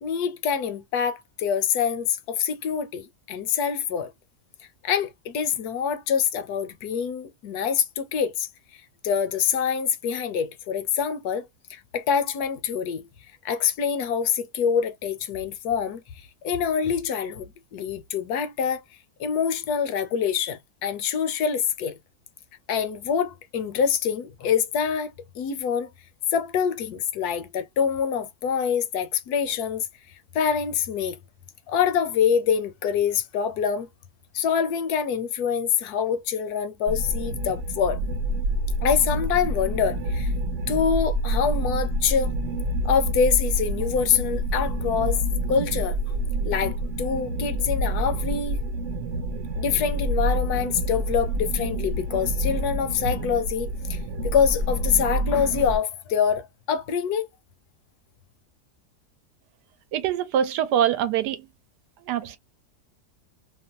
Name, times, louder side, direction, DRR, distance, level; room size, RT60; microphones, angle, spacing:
voice 1, 0.0-4.1 4.8-8.5 9.0-13.0 13.4-16.0 16.4-18.8 19.2-22.0 22.7-25.9 26.3-29.9 30.3-31.2 31.7-33.9 34.3-38.0 38.8-40.3 40.7-42.3 42.8-45.2 45.5-46.0 46.4-48.6 49.6-57.3, left 7 dB, 75° left, 1.1 m, -25 dB
sound 1, 36.9-55.8, right 1 dB, 55° right, 1.0 m, -27 dB
voice 2, 59.9-61.5 62.0-62.4, right 10 dB, 80° right, 1.2 m, -24 dB
3.0 x 2.2 x 2.7 m
omnidirectional pair, 1.8 m